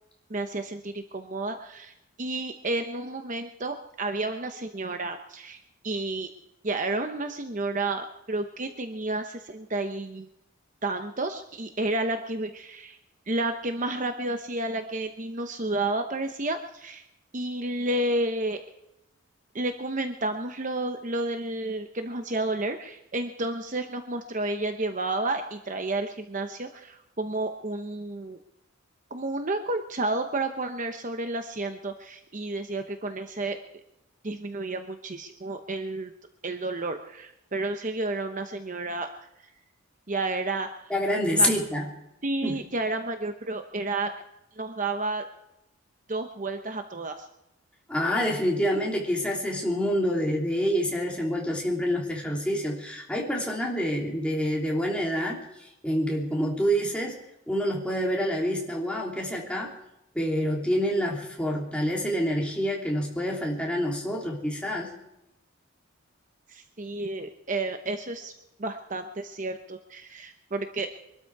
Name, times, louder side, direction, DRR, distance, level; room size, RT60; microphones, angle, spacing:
voice 1, 0.3-6.3 6.6-10.3 10.8-13.0 13.3-17.0 17.3-18.6 19.5-28.4 29.1-33.6 34.2-36.1 36.4-39.3 40.1-40.9 41.3-41.5 42.2-44.1 44.6-45.2 46.1-47.3 66.5-68.3 68.6-70.9, right 2 dB, 35° right, 7 dB, 0.9 m, -31 dB
voice 2, 40.9-41.9 42.4-42.6 47.9-57.2 57.5-59.7 60.1-64.9, equal, 5° left, -2 dB, 3.0 m, -27 dB
23.5 x 13.0 x 4.7 m, 0.87 s
head